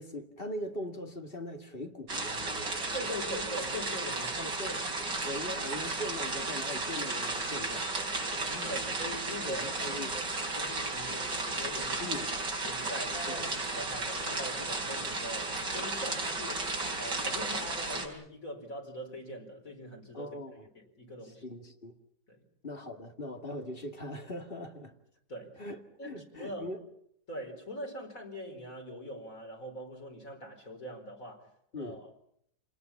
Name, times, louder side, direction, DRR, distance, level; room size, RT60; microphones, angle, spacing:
voice 1, 0.0-3.3 4.4-7.9 8.5-9.0 9.4-10.2 12.0-12.3 13.3-13.5 20.1-20.6 21.2-21.9 22.6-24.9 25.6-26.8 31.7-32.0, left 1 dB, 30° left, 2.3 m, -41 dB
sound 1, 2.1-18.1, right 3 dB, 80° right, 4.8 m, -34 dB
voice 2, 2.9-4.4 8.6-12.2 12.6-20.4 20.7-21.4 22.3-22.4 25.3-25.7 26.0-26.7 27.3-31.5 31.7-32.1, equal, 50° left, 4.9 m, -42 dB
28.5 x 20.0 x 7.2 m
omnidirectional pair, 1.9 m